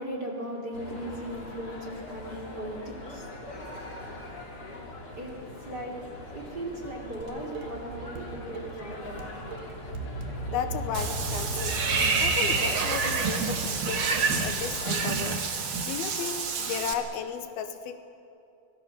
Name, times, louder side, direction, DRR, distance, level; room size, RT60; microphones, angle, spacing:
voice 1, 0.0-9.4, right 1 dB, 30° right, -1 dB, 2.8 m, -39 dB
sound 1, 0.7-15.1, equal, 25° left, 3.1 m, -39 dB
Dishes pots and pans, 7.2-8.2 8.5-14.3, right 5 dB, 85° right, 4.0 m, -43 dB
voice 2, 10.5-11.8 12.2-18.0, left 8 dB, 75° left, 8 dB, 2.8 m, -35 dB
Water / Bathtub (filling or washing), 10.9-16.9, right 5 dB, 55° right, 1.5 m, -28 dB
25.0 x 19.0 x 7.1 m, 2.8 s
omnidirectional pair, 4.6 m